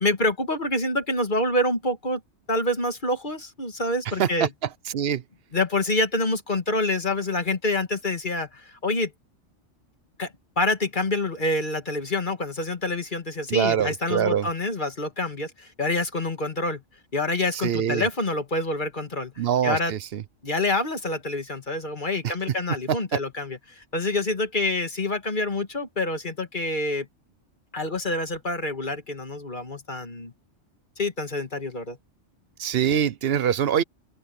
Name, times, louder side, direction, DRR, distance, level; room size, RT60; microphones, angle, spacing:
voice 1, 0.0-2.2 2.5-4.5 5.5-9.1 10.2-16.8 17.1-19.9 20.4-27.1 27.7-30.3 31.0-32.0, left 2 dB, 40° left, 2.0 m, -27 dB
voice 2, 4.9-5.2 13.5-14.5 17.6-18.1 19.4-20.2 22.2-22.3 22.9-23.2 32.6-33.8, right 9 dB, 60° right, 0.9 m, -24 dB
open air
omnidirectional pair, 1.2 m